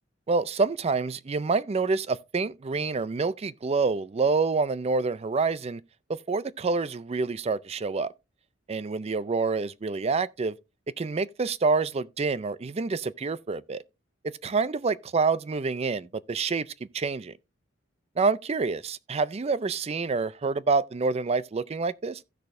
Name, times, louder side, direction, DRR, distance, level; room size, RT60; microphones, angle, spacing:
voice 1, 0.3-5.8 6.1-8.1 8.7-10.6 11.0-13.8 14.4-17.3 18.2-22.2, right 4 dB, 30° right, 0.4 m, -27 dB
15.5 x 6.4 x 2.6 m
head